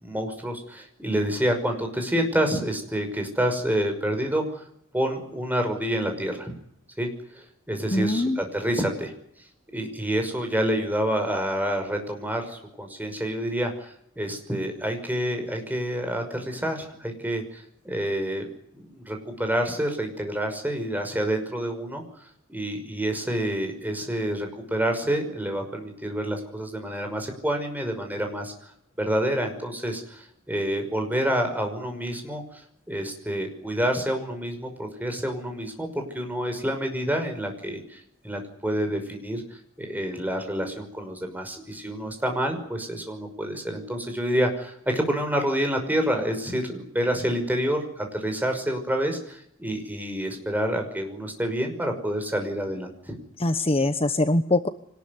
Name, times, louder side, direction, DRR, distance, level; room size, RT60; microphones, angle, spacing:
voice 1, 0.0-4.6 4.9-6.5 7.0-9.1 9.7-18.5 18.7-22.0 22.5-28.5 29.0-53.2, equal, 10° right, 4 dB, 5.7 m, -28 dB
voice 2, 7.9-8.4 53.4-54.7, left 2 dB, 30° left, 9 dB, 1.0 m, -23 dB
25.0 x 20.0 x 9.6 m, 0.72 s
head